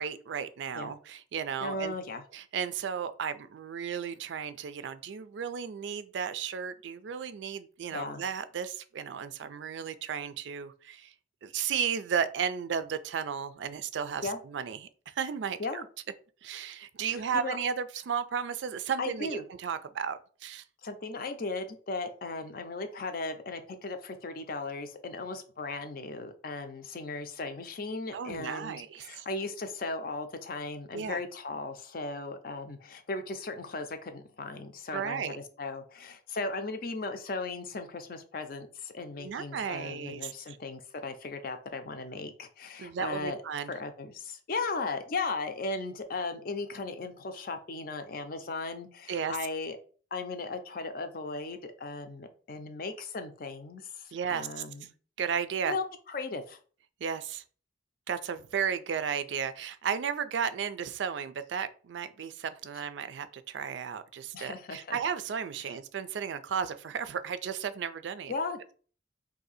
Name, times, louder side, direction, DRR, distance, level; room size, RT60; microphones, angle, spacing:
voice 1, 0.0-2.0 2.3-11.1 11.4-14.8 15.1-15.8 16.4-20.6 28.1-29.3 30.9-31.2 34.9-35.4 39.2-40.6 42.8-43.7 49.1-49.4 54.1-54.6 55.2-55.7 57.0-57.4 58.1-68.3, right 7 dB, 85° right, 13 dB, 0.4 m, -34 dB
voice 2, 1.6-2.2 7.9-8.2 14.2-14.4 15.6-15.9 17.1-17.6 19.0-19.5 20.8-43.4 43.7-49.8 50.1-54.9 55.7-56.6 64.3-65.0 65.6-65.7 68.3-68.6, left 3 dB, 55° left, 8 dB, 0.5 m, -37 dB
2.7 x 2.7 x 4.0 m, 0.41 s
head